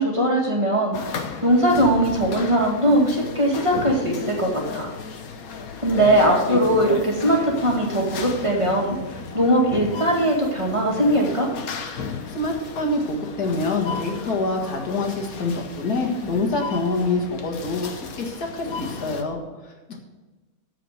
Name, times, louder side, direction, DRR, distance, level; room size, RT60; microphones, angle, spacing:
voice 1, 0.0-4.9 5.8-11.5, right 1 dB, 20° right, -2 dB, 2.1 m, -20 dB
sound 1, 0.9-19.2, left 5 dB, 70° left, 1.4 m, -34 dB
voice 2, 12.3-20.0, left 2 dB, 85° left, 2 dB, 2.3 m, -26 dB
14.5 x 5.0 x 6.6 m, 1.2 s
omnidirectional pair, 1.6 m